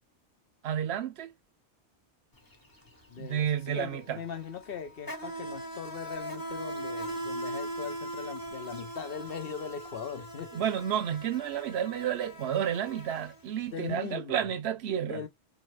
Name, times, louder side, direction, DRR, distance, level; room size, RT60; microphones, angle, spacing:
voice 1, 0.6-1.3 3.2-4.2 10.5-15.2, right 9 dB, 75° right, 0.8 m, -31 dB
Insect, 2.4-2.6 2.8-13.8, right 1 dB, 20° left, 0.9 m, -40 dB
voice 2, 3.1-10.6 13.7-14.5 15.0-15.3, left 7 dB, 60° left, 0.9 m, -40 dB
3.8 x 2.6 x 3.3 m
omnidirectional pair, 1.1 m